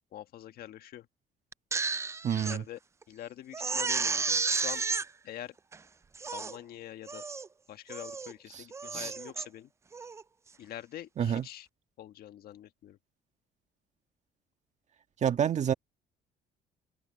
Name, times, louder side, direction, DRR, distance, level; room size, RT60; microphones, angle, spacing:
voice 1, 0.1-1.1 2.4-2.8 3.1-4.8 5.2-5.5 6.3-7.2 7.7-9.7 10.6-11.7 12.0-13.0, left 12 dB, 65° left, 1.6 m, -45 dB
Crying sobbing, 1.5-2.6 3.0-3.1 3.5-5.1 5.7-5.8 6.1-6.6 7.1-7.5 7.9-8.3 8.7-9.5 9.9-10.2, right 4 dB, 15° right, 0.3 m, -32 dB
voice 2, 2.2-2.6 8.5-8.6 8.9-9.1 11.2-11.4 15.2-15.7, right 8 dB, 45° right, 1.7 m, -28 dB
open air
cardioid pair, 110°, 17 cm